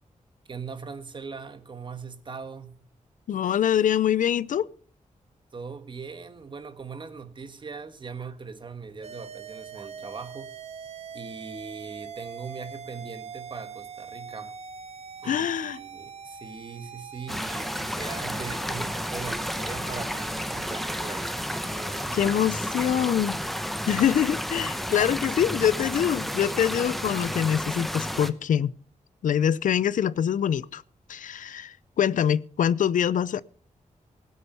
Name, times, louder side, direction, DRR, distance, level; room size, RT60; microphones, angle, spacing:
voice 1, 0.5-2.8 5.5-10.5 11.1-14.5 15.2-21.4 21.7-22.2, right 5 dB, 35° right, 1.5 m, -40 dB
voice 2, 3.3-4.7 15.2-15.8 22.1-23.4 23.9-28.7 29.2-30.8 31.1-33.4, left 9 dB, 85° left, 0.5 m, -24 dB
sound 1, 9.0-22.7, right 6 dB, 55° right, 0.8 m, -43 dB
sound 2, 17.3-28.3, equal, ahead, 0.8 m, -31 dB
18.5 x 8.5 x 5.6 m
wide cardioid pair, 165°, 13 cm